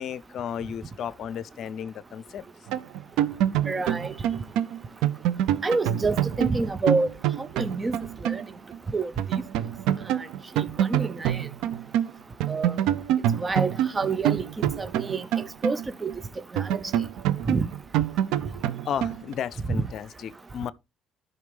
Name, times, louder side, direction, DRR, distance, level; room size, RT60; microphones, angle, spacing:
voice 1, 0.0-2.4 18.8-20.7, left 9 dB, 60° left, 0.5 m, -33 dB
sound 1, 2.7-8.5 8.7-8.8 9.2-12.1 12.4-16.1 16.6-19.3, right 11 dB, 75° right, 0.6 m, -26 dB
voice 2, 3.7-4.1 5.6-7.1 7.4-8.0 8.2-8.4 8.9-9.1 10.1-10.2 10.6-11.4 12.5-12.7 13.4-14.5 14.8-15.3 15.6-16.1 16.5-16.8 17.5-17.7, right 3 dB, 30° right, 0.8 m, -27 dB
12.5 x 5.6 x 3.4 m
hypercardioid pair, 60°, 0 cm